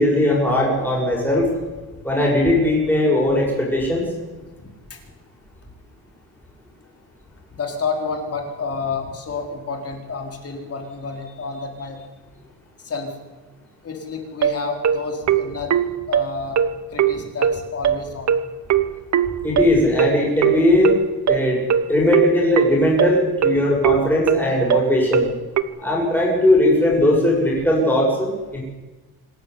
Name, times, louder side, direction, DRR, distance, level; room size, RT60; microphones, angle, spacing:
voice 1, 0.0-1.5 2.0-4.1 19.4-21.0 21.3-21.6 21.9-25.3 25.8-28.6, left 1 dB, 5° left, -3 dB, 7.4 m, -18 dB
voice 2, 4.6-5.0 6.8-7.0 7.5-12.0 12.8-13.2 13.8-15.7 16.1-16.6 16.9-18.3 23.9-24.0, left 4 dB, 35° left, 3 dB, 4.5 m, -30 dB
sound 1, 14.4-25.6, right 9 dB, 45° right, 1.1 m, -19 dB
26.0 x 13.5 x 10.0 m, 1.2 s
cardioid pair, 150°, 39 cm